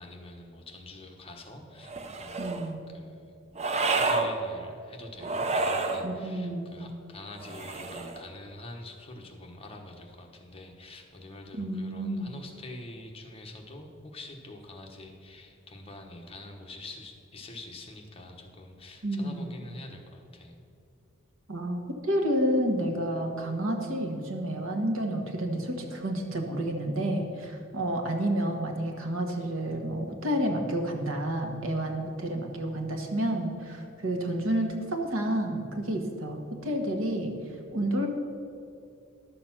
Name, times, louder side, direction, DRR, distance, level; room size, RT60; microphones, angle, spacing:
voice 1, 0.0-2.6 2.9-3.3 3.9-20.6, left 2 dB, 30° left, 2 dB, 1.1 m, -45 dB
sound 1, 1.8-2.7 3.6-4.3 5.2-6.1 7.4-8.2, right 3 dB, 35° right, 0.7 m, -29 dB
voice 2, 2.4-2.8 6.0-6.8 11.6-12.3 19.0-19.5 21.5-37.4 37.7-38.1, right 1 dB, 85° right, 3 dB, 1.4 m, -30 dB
11.5 x 6.8 x 6.0 m, 2.6 s
head